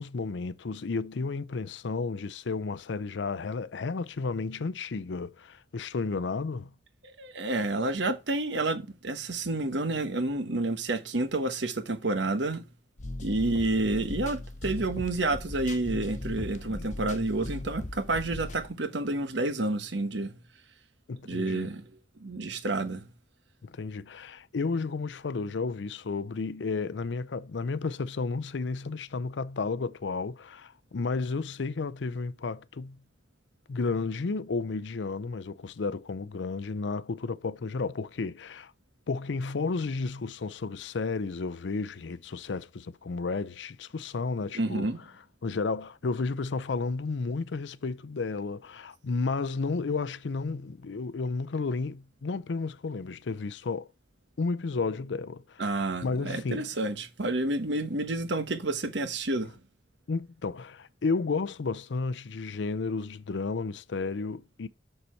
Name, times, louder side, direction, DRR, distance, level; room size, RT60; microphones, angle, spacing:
voice 1, 0.0-6.7 16.6-16.9 21.1-21.7 23.6-33.0 33.7-38.7 39.1-44.9 45.4-53.9 54.4-56.7 60.1-64.7, left 4 dB, 75° left, 0.5 m, -32 dB
voice 2, 7.0-12.6 13.2-20.3 21.2-21.9 22.2-23.0 44.5-45.0 55.6-59.5, right 2 dB, 70° right, 1.2 m, -29 dB
sound 1, 13.0-18.7, left 2 dB, 40° left, 0.9 m, -38 dB
6.9 x 6.6 x 4.5 m
head